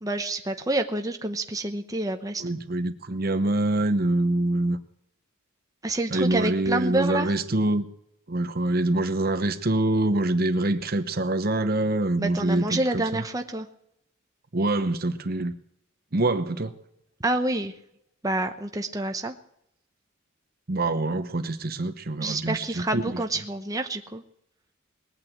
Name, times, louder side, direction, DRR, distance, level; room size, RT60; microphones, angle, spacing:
voice 1, 0.0-2.4 5.8-7.3 12.2-13.7 17.2-17.7 18.2-19.4 22.2-24.2, right 2 dB, 15° right, 5 dB, 0.9 m, -28 dB
voice 2, 2.4-4.8 6.1-7.9 8.3-13.0 14.5-15.5 16.1-16.7 20.7-23.2, right 2 dB, 45° right, 10 dB, 0.9 m, -25 dB
20.0 x 9.0 x 7.8 m, 0.77 s
head